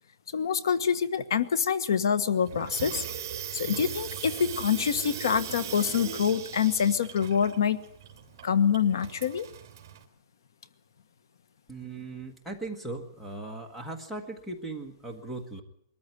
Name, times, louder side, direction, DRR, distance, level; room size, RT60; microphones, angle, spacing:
voice 1, 0.3-3.0 3.5-7.8 8.4-9.5, left 7 dB, 75° left, 15 dB, 1.4 m, -26 dB
Water tap faucet / Sink (filling or washing), 2.5-10.0, right 9 dB, 35° right, 3.2 m, -39 dB
voice 2, 11.7-15.6, right 2 dB, ahead, 4 dB, 1.5 m, -38 dB
22.0 x 14.0 x 9.8 m, 0.69 s
hypercardioid pair, 175°, 2 cm